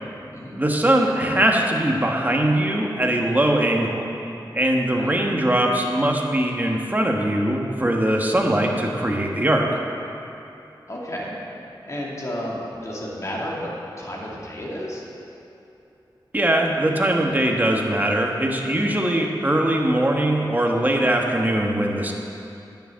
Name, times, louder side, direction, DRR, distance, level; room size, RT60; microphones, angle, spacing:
voice 1, 0.6-4.1 4.5-9.8 16.3-22.1, right 1 dB, 20° right, 0 dB, 1.3 m, -21 dB
voice 2, 10.9-11.3 11.9-15.0, equal, 40° left, -4 dB, 2.3 m, -32 dB
10.0 x 7.0 x 7.5 m, 2.7 s
wide cardioid pair, 75°, 8 cm